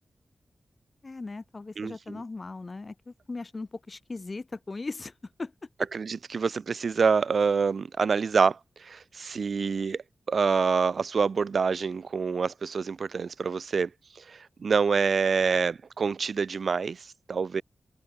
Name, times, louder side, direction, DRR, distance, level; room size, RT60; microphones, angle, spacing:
voice 1, 1.0-5.1 5.4-5.5, left 3 dB, 40° left, 5.8 m, -38 dB
voice 2, 5.9-10.0 10.3-13.9 14.1-17.6, right 5 dB, 65° right, 1.5 m, -26 dB
cardioid pair, 70°, 0 cm